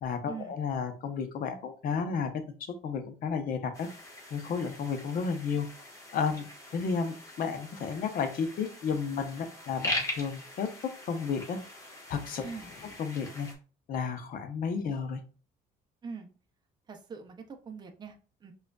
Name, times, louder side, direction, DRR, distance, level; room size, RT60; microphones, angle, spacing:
voice 1, 0.0-3.9 4.3-5.7 6.1-6.4 6.7-10.7 11.1-11.6 12.1-12.5 13.0-13.5 13.9-15.2, left 6 dB, 55° left, 7 dB, 0.7 m, -32 dB
sound 1, 3.7-13.5, left 1 dB, 20° left, 1.2 m, -41 dB
voice 2, 16.9-18.5, right 5 dB, 25° right, 4 dB, 0.6 m, -43 dB
4.9 x 2.4 x 2.3 m, 0.38 s
cardioid pair, 110°, 17 cm